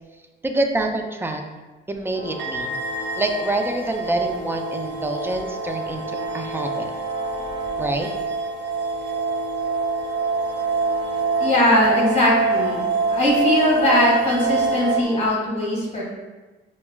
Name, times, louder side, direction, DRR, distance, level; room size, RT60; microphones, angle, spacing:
voice 1, 0.4-1.4 1.9-2.7 3.2-6.9 7.8-8.1, right 2 dB, 10° right, 4 dB, 0.4 m, -26 dB
sound 1, 2.1-15.0, left 1 dB, 50° left, 0.6 m, -34 dB
sound 2, 2.4-15.0, right 4 dB, 65° right, 0.5 m, -26 dB
voice 2, 11.4-12.8 13.1-16.0, left 1 dB, 35° left, -4 dB, 1.5 m, -20 dB
5.5 x 2.1 x 2.2 m, 1.2 s
cardioid pair, 90°, 20 cm